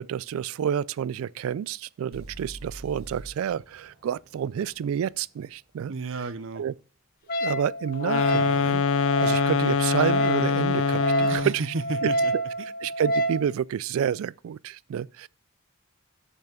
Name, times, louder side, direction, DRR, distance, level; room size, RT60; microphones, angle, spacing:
voice 1, 0.0-5.9 6.6-6.7 7.4-8.8 9.2-11.6 12.0-12.4 12.8-15.3, right 8 dB, 80° right, 0.3 m, -29 dB
sound 1, 2.1-6.1, right 1 dB, 50° right, 3.1 m, -46 dB
voice 2, 5.9-6.6 11.3-12.3, right 3 dB, 65° right, 0.7 m, -32 dB
Wind instrument woodwind instrument, 7.3-13.5, right 1 dB, 45° left, 0.9 m, -28 dB
sound 2, 8.0-11.6, left 5 dB, 75° left, 0.4 m, -24 dB
7.0 x 5.7 x 6.4 m
head